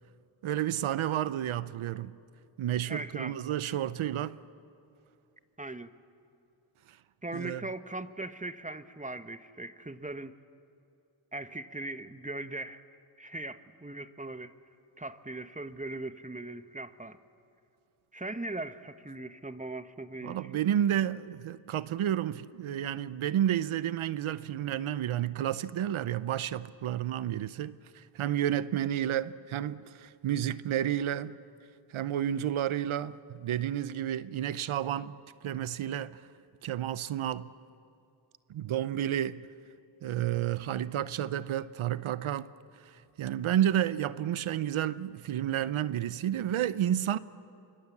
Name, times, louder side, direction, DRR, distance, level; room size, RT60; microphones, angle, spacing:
voice 1, 0.4-2.1 2.6-4.4 7.3-7.6 20.2-31.4 31.9-36.3 36.6-37.5 38.5-39.4 40.0-42.5 42.8-47.2, right 11 dB, 90° right, 0.7 m, -31 dB
voice 2, 2.9-3.4 5.6-5.9 7.2-10.3 11.3-12.8 13.2-14.5 15.0-17.2 18.1-20.5, right 2 dB, 15° right, 1.2 m, -39 dB
27.5 x 24.5 x 7.3 m
cardioid pair, 45°, 48 cm